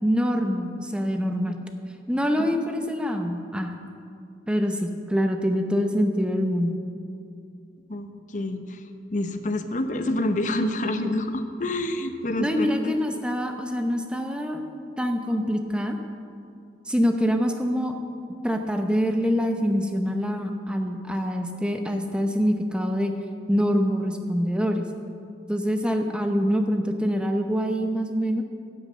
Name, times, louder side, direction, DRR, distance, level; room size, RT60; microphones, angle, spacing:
voice 1, 0.0-1.6 2.1-3.8 4.5-6.8 12.4-14.6 15.0-16.0 16.9-17.9 18.4-23.1 23.5-24.9 25.5-28.4, equal, 5° right, 5 dB, 0.7 m, -25 dB
voice 2, 7.9-8.8 9.1-13.0, left 1 dB, 45° left, 8 dB, 0.7 m, -27 dB
10.5 x 8.5 x 7.5 m, 2.4 s
head